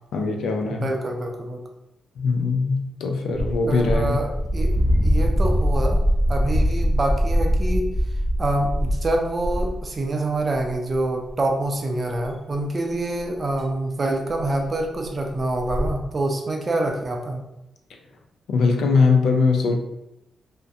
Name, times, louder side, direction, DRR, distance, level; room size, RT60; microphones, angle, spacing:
voice 1, 0.1-0.9 2.2-4.2 18.5-19.8, left 4 dB, 80° left, 3 dB, 0.4 m, -21 dB
voice 2, 0.7-1.6 3.7-4.3 4.5-4.7 5.0-6.0 6.3-7.9 8.4-17.4, right 2 dB, 40° right, 2 dB, 0.4 m, -26 dB
sound 1, 3.3-9.9 10.5-11.0 11.3-11.4 12.2-12.3 13.2-13.3 13.6-13.7 14.3-14.5 14.8-14.9 15.0-15.1 15.5-15.9, equal, 30° left, 0.9 m, -22 dB
2.4 x 2.1 x 2.6 m, 0.90 s
cardioid pair, 80°, 0 cm